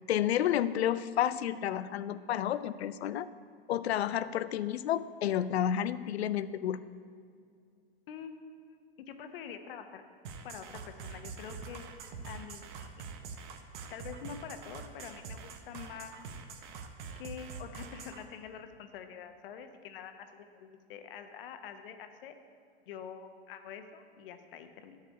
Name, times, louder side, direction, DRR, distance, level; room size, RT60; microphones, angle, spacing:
voice 1, 0.1-3.3 3.7-6.8, left 11 dB, 75° left, 15 dB, 0.5 m, -30 dB
voice 2, 8.1-10.0 10.4-11.8 12.2-13.1 13.9-16.3 17.2-22.3 22.9-25.0, left 7 dB, 60° left, 8 dB, 1.0 m, -46 dB
sound 1, 10.2-18.2, right 5 dB, 50° right, 1.0 m, -45 dB
10.5 x 4.8 x 8.1 m, 2.3 s
hypercardioid pair, 115°, 32 cm